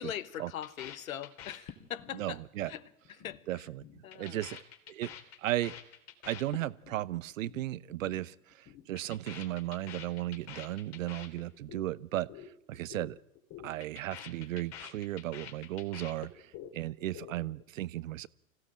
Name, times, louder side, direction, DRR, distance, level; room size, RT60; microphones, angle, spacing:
voice 1, 0.0-2.8 3.2-3.6 4.0-4.4, left 10 dB, 70° left, 1.3 m, -41 dB
sound 1, 0.6-2.2 2.4-2.8 3.0-3.4 3.7-7.0 7.3-7.6 7.9-8.2 8.5-11.9 12.1-12.5 12.7-13.1 13.4-16.7 17.0-17.6, left 10 dB, 40° left, 3.3 m, -47 dB
voice 2, 2.1-2.7 3.5-5.1 5.4-5.7 6.2-13.2 13.6-18.3, right 15 dB, 60° right, 0.8 m, -36 dB
25.5 x 16.0 x 8.7 m
figure-of-eight pair, 100°, 43 cm